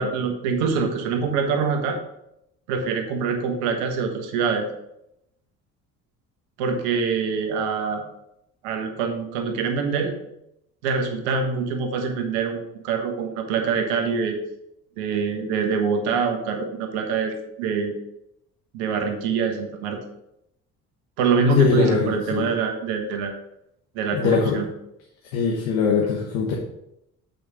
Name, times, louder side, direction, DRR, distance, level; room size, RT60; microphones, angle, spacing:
voice 1, 0.0-2.0 2.7-4.7 6.6-8.0 8.6-10.1 10.8-14.4 15.0-17.9 18.7-20.0 21.2-23.3 23.9-24.7, right 5 dB, 65° right, 4 dB, 1.4 m, -24 dB
voice 2, 21.6-22.5 24.1-24.6 25.3-26.6, left 5 dB, 65° left, -1 dB, 1.3 m, -21 dB
8.4 x 5.1 x 4.9 m, 0.81 s
figure-of-eight pair, 50°, 43 cm